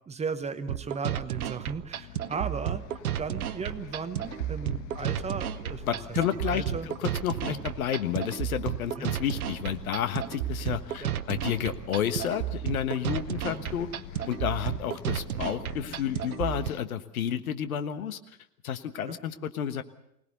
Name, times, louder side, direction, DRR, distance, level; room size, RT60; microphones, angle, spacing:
voice 1, 0.1-2.8 3.2-5.8 6.4-6.9 7.5-7.6 9.0-9.1 11.0-11.2 13.5-13.6 19.1-19.2, right 5 dB, 15° right, 10 dB, 1.0 m, -36 dB
sound 1, 0.7-16.7, right 11 dB, 65° right, 0.9 m, -33 dB
Bus, 1.9-16.8, left 10 dB, 35° left, 1.1 m, -46 dB
voice 2, 5.8-13.9 14.3-18.2 18.6-19.8, left 9 dB, 60° left, 11 dB, 1.4 m, -31 dB
24.5 x 18.5 x 6.8 m, 0.80 s
figure-of-eight pair, 90°, 48 cm